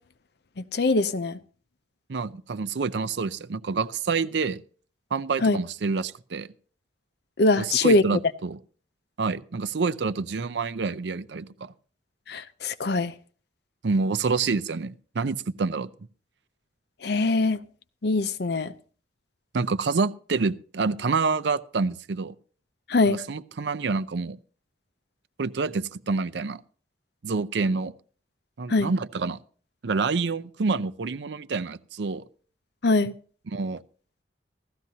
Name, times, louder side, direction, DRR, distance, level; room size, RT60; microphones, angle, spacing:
voice 1, 0.7-1.4 5.4-5.6 7.4-8.0 12.3-13.1 17.0-17.6 18.0-18.7 22.9-23.2 28.7-28.9 32.8-33.1, left 2 dB, 65° left, 0.6 m, -22 dB
voice 2, 2.1-4.6 5.1-6.5 7.6-8.6 9.2-11.7 13.8-15.9 19.5-22.3 23.1-24.4 25.4-26.6 27.2-27.9 28.6-29.4 29.8-32.2 33.5-33.8, right 4 dB, 70° right, 0.5 m, -27 dB
16.0 x 13.5 x 2.8 m
head